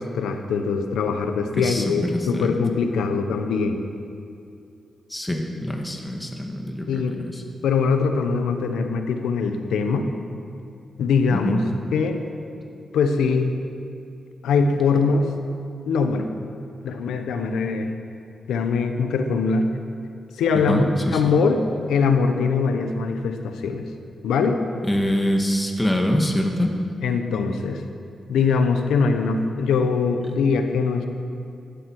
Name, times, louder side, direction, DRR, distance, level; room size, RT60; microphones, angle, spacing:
voice 1, 0.0-3.8 6.9-7.2 7.6-10.1 11.0-11.6 11.9-12.2 12.9-13.6 14.4-15.3 15.9-16.3 16.8-17.9 18.5-19.7 20.3-21.6 21.9-23.9 24.2-24.6 27.0-27.8 28.3-31.1, left 5 dB, 85° left, 6 dB, 1.1 m, -22 dB
voice 2, 2.1-2.5 5.1-7.4 11.3-11.6 20.7-21.3 24.8-26.7, equal, 15° left, 2 dB, 1.9 m, -24 dB
14.5 x 12.0 x 4.8 m, 2.5 s
supercardioid pair, 50°, 0 cm